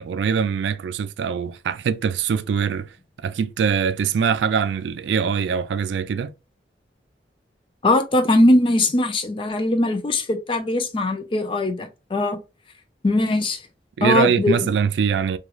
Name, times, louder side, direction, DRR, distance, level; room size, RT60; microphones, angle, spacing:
voice 1, 0.0-2.9 3.2-6.3 14.0-15.4, right 6 dB, 85° right, 0.3 m, -23 dB
voice 2, 7.8-12.4 13.0-13.6 14.0-14.7, left 1 dB, 30° left, 0.4 m, -20 dB
3.0 x 2.3 x 2.3 m
head